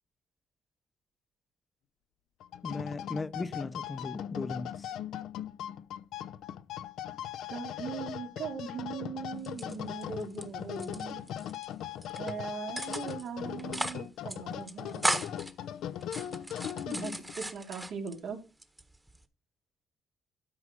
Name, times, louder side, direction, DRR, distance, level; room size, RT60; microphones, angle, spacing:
sound 1, 2.4-17.4, left 10 dB, 80° left, 0.7 m, -39 dB
voice 1, 2.6-4.9, left 3 dB, 25° left, 0.9 m, -37 dB
voice 2, 7.5-11.2 12.2-15.1 16.8-18.4, right 6 dB, 70° right, 3.0 m, -40 dB
sound 2, 9.4-10.4 10.7-11.7 12.0-12.3 12.8-13.3 13.6-14.0 14.3-14.4 14.7-15.5 16.0-18.2 18.6-19.2, right 1 dB, 10° right, 1.5 m, -36 dB
12.5 x 4.9 x 6.1 m
cardioid pair, 90°, 0 cm